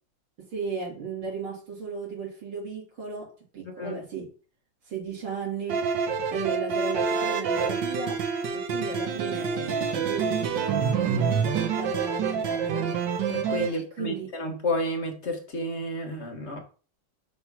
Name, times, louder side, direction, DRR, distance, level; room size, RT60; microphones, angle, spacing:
voice 1, 0.5-4.3 4.9-5.8 6.3-8.2 8.5-12.9 13.6-14.3, right 5 dB, 85° right, 3.7 m, -35 dB
voice 2, 3.7-4.0 13.3-16.6, left 1 dB, 40° left, 1.2 m, -31 dB
sound 1, 5.7-13.7, right 6 dB, 65° right, 1.6 m, -27 dB
5.9 x 3.6 x 5.8 m
omnidirectional pair, 2.2 m